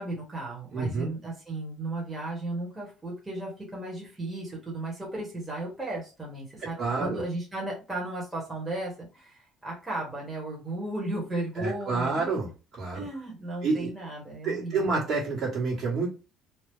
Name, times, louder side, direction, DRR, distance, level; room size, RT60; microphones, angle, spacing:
voice 1, 0.0-12.3 12.9-15.0, right 2 dB, 15° right, -4 dB, 1.4 m, -35 dB
voice 2, 0.7-1.1 6.6-7.2 11.6-13.1 13.6-13.9 14.4-16.1, right 4 dB, 40° right, -6 dB, 1.7 m, -29 dB
2.9 x 2.4 x 3.6 m, 0.32 s
supercardioid pair, 90°, 0 cm